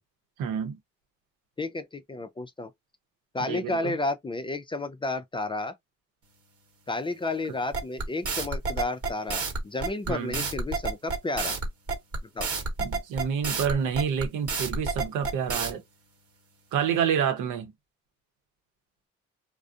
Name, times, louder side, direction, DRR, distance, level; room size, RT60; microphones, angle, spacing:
voice 1, 0.4-0.8 3.4-3.9 10.1-10.4 12.8-15.8 16.7-17.7, right 7 dB, 85° right, 0.8 m, -28 dB
voice 2, 1.6-2.7 3.3-5.7 6.9-11.6 12.3-12.5, left 2 dB, 15° left, 0.3 m, -32 dB
sound 1, 7.7-15.7, right 3 dB, 50° right, 1.1 m, -29 dB
2.4 x 2.1 x 2.6 m
cardioid pair, 90°, 30 cm